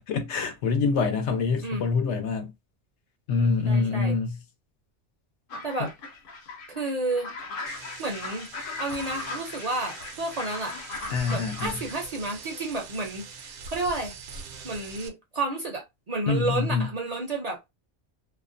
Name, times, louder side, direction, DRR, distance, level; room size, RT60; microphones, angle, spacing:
voice 1, 0.1-2.5 3.3-4.4 5.8-5.9 11.1-11.8 16.3-16.9, left 4 dB, 85° left, 0.9 m, -25 dB
voice 2, 3.7-4.1 5.6-5.9 6.7-7.3 8.0-8.5 8.8-10.8 11.3-14.1 14.6-17.6, right 2 dB, 50° right, 0.5 m, -31 dB
sound 1, 5.5-11.9, left 3 dB, 60° left, 0.7 m, -38 dB
sound 2, 7.7-15.1, right 5 dB, 75° right, 0.8 m, -43 dB
2.5 x 2.1 x 2.4 m
omnidirectional pair, 1.1 m